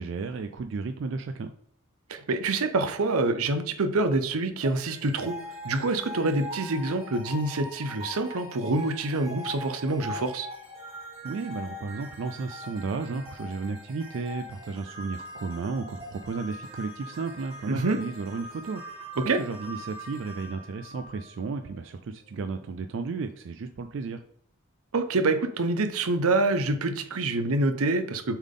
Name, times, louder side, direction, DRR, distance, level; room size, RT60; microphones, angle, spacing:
voice 1, 0.0-1.5 11.2-19.1 19.4-24.2, right 4 dB, 60° right, 7 dB, 0.3 m, -33 dB
voice 2, 2.1-5.3 5.6-10.5 17.7-18.0 19.2-19.4 24.9-28.4, right 2 dB, 85° right, 8 dB, 0.7 m, -26 dB
sound 1, 4.6-21.8, left 1 dB, 30° right, 1.8 m, -42 dB
7.1 x 3.6 x 3.7 m, 0.62 s
head